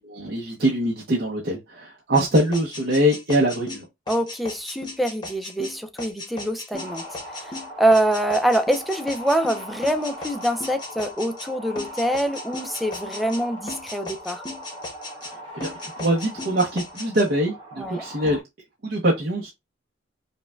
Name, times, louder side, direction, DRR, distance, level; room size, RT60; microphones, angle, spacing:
voice 1, 0.0-3.8 15.5-18.4 18.8-19.5, right 1 dB, 55° right, 0.8 m, -23 dB
sound 1, 2.1-11.5 11.8-13.4 13.7-15.3 15.6-17.3, left 2 dB, 25° left, 0.8 m, -36 dB
voice 2, 4.1-7.0 7.4-7.5 7.8-14.4 17.8-18.0, right 1 dB, ahead, 0.4 m, -24 dB
sound 2, 6.7-18.4, equal, 25° right, 1.4 m, -40 dB
5.3 x 2.2 x 2.2 m
head